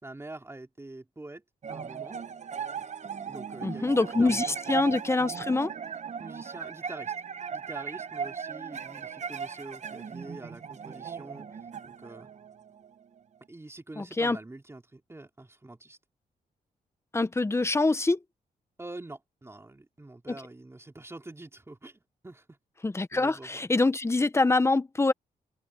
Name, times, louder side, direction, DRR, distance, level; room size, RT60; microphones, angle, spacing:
voice 1, 0.0-1.4 1.7-2.2 3.3-4.6 6.2-7.1 7.5-12.3 13.5-16.0 18.8-22.6 23.1-23.6, right 2 dB, 15° right, 3.5 m, -45 dB
sound 1, 1.6-13.2, right 6 dB, 50° right, 1.0 m, -38 dB
voice 2, 3.6-5.7 14.0-14.4 17.1-18.2 22.8-25.1, left 3 dB, 15° left, 0.9 m, -25 dB
open air
cardioid pair, 100°, 16 cm